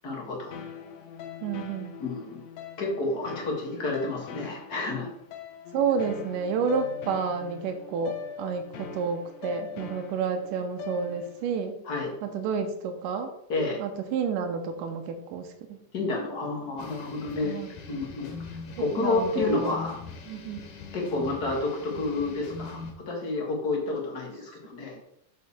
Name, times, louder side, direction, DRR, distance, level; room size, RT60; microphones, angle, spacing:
voice 1, 0.0-0.5 2.0-2.4 2.8-5.1 11.8-12.1 13.5-13.8 15.9-17.5 17.9-18.3 18.8-19.9 20.9-22.8 23.1-25.0, left 3 dB, 40° left, -1 dB, 1.6 m, -29 dB
sound 1, 0.5-11.5, left 7 dB, 70° left, 1.9 m, -42 dB
voice 2, 1.4-1.9 5.7-11.8 12.2-13.3 13.8-15.8 17.4-17.7 18.8-19.8 20.3-20.7 25.0-25.1, right 5 dB, 90° right, 5 dB, 2.4 m, -30 dB
sound 2, 16.8-22.9, left 4 dB, 85° left, 2.9 m, -42 dB
6.6 x 6.2 x 4.2 m, 0.77 s
omnidirectional pair, 3.7 m